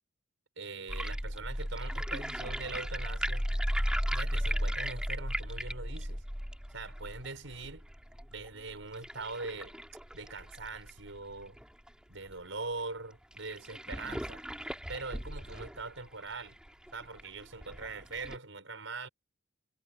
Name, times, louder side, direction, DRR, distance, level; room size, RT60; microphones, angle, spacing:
voice 1, 0.6-3.5 4.1-6.2 6.7-7.8 8.3-9.7 10.1-11.6 12.1-14.4 14.9-16.6 16.9-19.1, right 3 dB, 75° right, 5.5 m, -42 dB
sound 1, 0.9-11.9 12.3-12.4 12.6-12.7 13.3-18.4, equal, 5° right, 2.5 m, -36 dB
head